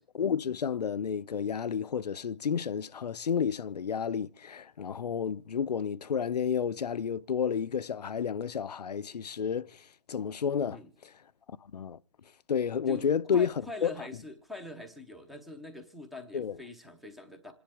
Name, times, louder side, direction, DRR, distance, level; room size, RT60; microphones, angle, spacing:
voice 1, 0.1-10.8 11.7-12.0 12.5-13.5 13.8-13.9 16.3-16.6, left 7 dB, 85° left, 0.7 m, -31 dB
voice 2, 10.6-10.9 12.9-17.5, left 2 dB, ahead, 0.7 m, -44 dB
27.5 x 10.5 x 3.5 m
hypercardioid pair, 170°, 20 cm